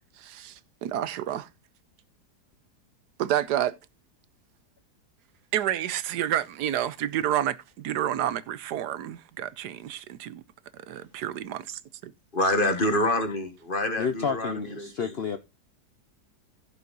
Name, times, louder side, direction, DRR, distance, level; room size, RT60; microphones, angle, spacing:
voice 1, 0.2-1.5 3.2-3.7 5.5-10.4 10.7-12.1, right 11 dB, 80° right, 1.3 m, -29 dB
voice 2, 12.3-15.1, left 1 dB, 30° left, 1.8 m, -27 dB
voice 3, 14.0-15.4, left 6 dB, 50° left, 0.8 m, -30 dB
15.5 x 5.6 x 3.9 m
omnidirectional pair, 1.8 m